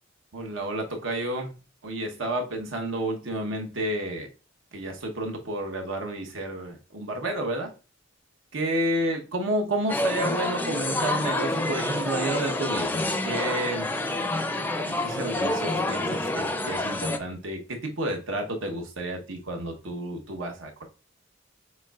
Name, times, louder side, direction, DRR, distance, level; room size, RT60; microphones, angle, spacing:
voice 1, 0.3-1.5 1.8-4.3 4.7-7.7 8.5-13.9 14.9-20.8, right 1 dB, 85° right, 1.0 m, -30 dB
sound 1, 9.9-17.2, left 2 dB, 10° left, 0.4 m, -28 dB
6.6 x 3.2 x 2.4 m
head